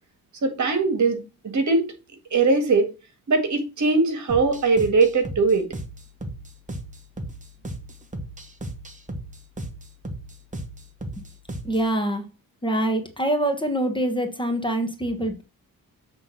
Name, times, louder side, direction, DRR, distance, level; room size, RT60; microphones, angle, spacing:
voice 1, 0.4-1.9 2.3-2.9 3.3-5.6, right 3 dB, 55° right, 1.9 m, -21 dB
sound 1, 4.3-11.9, right 1 dB, 20° right, 1.2 m, -36 dB
voice 2, 11.6-12.2 12.6-15.4, right 1 dB, 15° left, 1.3 m, -25 dB
7.6 x 3.7 x 6.0 m
cardioid pair, 120°, 35 cm